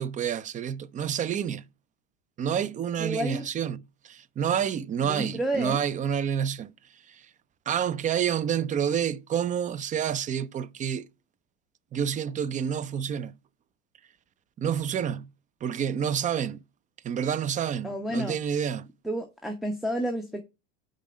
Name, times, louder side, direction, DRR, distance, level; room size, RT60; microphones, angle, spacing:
voice 1, 0.0-1.6 2.4-6.7 7.7-11.1 11.9-13.3 14.6-15.3 15.6-16.6 17.0-18.9, right 8 dB, 20° right, 0.4 m, -28 dB
voice 2, 3.0-3.4 5.0-5.8 17.8-18.4 19.0-20.4, right 1 dB, ahead, 1.0 m, -30 dB
5.3 x 5.1 x 6.3 m
hypercardioid pair, 100°, 37 cm